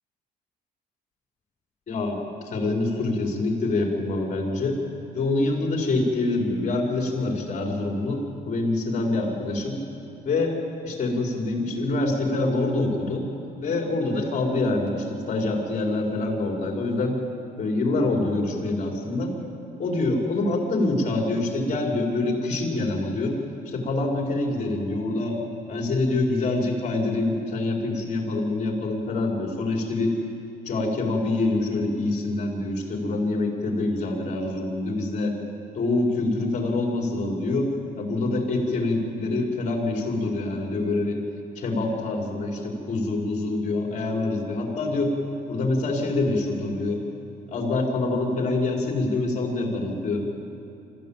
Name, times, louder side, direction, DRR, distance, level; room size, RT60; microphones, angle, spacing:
voice 1, 1.9-2.2 2.5-4.8 5.1-9.8 10.2-10.6 10.8-13.2 13.6-17.2 17.6-19.3 19.8-23.4 23.7-25.4 25.7-30.2 30.7-35.3 35.7-37.7 38.0-41.2 41.6-45.1 45.5-47.0 47.5-50.2, left 2 dB, 45° left, 0 dB, 5.3 m, -25 dB
25.0 x 14.5 x 9.2 m, 2.7 s
cardioid pair, 110°, 17 cm